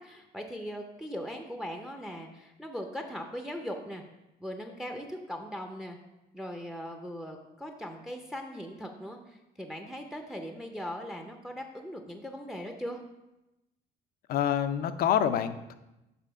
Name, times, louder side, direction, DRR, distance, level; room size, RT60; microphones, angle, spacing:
voice 1, 0.0-4.0 4.4-6.0 6.3-13.0, equal, 5° right, 4 dB, 0.6 m, -39 dB
voice 2, 14.3-15.7, left 9 dB, 65° left, 11 dB, 0.5 m, -27 dB
6.8 x 3.5 x 5.1 m, 0.95 s
cardioid pair, 110°, 17 cm